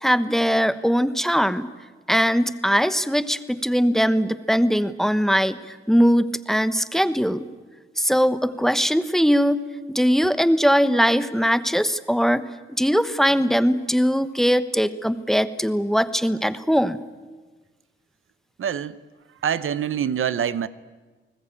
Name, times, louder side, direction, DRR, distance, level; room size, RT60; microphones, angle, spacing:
voice 1, 0.0-1.7 2.1-7.5 8.0-9.6 9.9-12.5 12.8-17.0, equal, ahead, 13 dB, 1.1 m, -21 dB
voice 2, 18.6-19.0 19.4-20.7, right 8 dB, 80° right, 15 dB, 0.9 m, -25 dB
29.5 x 19.5 x 8.8 m, 1.3 s
wide cardioid pair, 105°, 21 cm